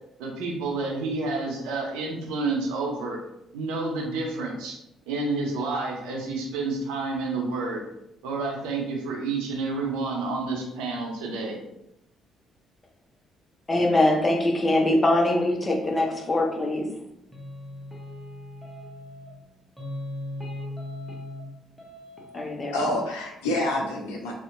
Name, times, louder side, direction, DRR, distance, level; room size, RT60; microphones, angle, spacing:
voice 1, 0.2-3.2 3.5-4.8 5.1-7.8 8.2-11.6, right 3 dB, 65° right, -1 dB, 0.5 m, -29 dB
voice 2, 13.7-16.9 22.3-22.7, left 1 dB, 30° left, 0 dB, 0.6 m, -22 dB
sound 1, 17.3-19.4 19.8-21.5 21.8-22.4, left 1 dB, ahead, 0.8 m, -38 dB
voice 3, 22.4-24.3, left 1 dB, 70° left, 0 dB, 0.5 m, -28 dB
2.6 x 2.1 x 2.5 m, 0.81 s
figure-of-eight pair, 45°, 0 cm